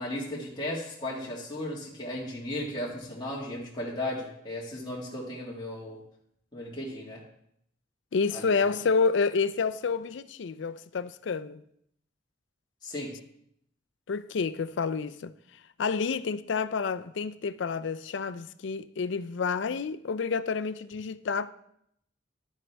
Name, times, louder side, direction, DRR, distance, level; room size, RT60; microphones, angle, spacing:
voice 1, 0.0-6.0 6.5-7.2 8.3-8.6 12.8-13.1, left 1 dB, 20° left, 1.7 m, -35 dB
voice 2, 8.1-11.6 14.1-15.3 15.8-21.5, left 5 dB, 70° left, 0.4 m, -29 dB
11.5 x 9.3 x 3.4 m
head